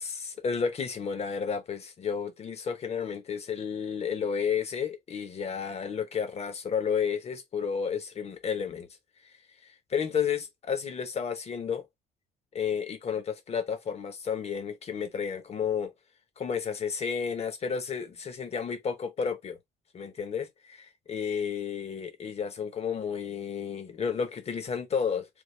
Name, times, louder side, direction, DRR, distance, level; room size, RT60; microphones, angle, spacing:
voice 1, 0.0-8.9 9.9-11.8 12.5-15.9 16.4-19.6 19.9-20.8 21.1-25.3, left 6 dB, 40° left, 0.9 m, -31 dB
3.5 x 2.3 x 3.1 m
cardioid pair, 110°, 17 cm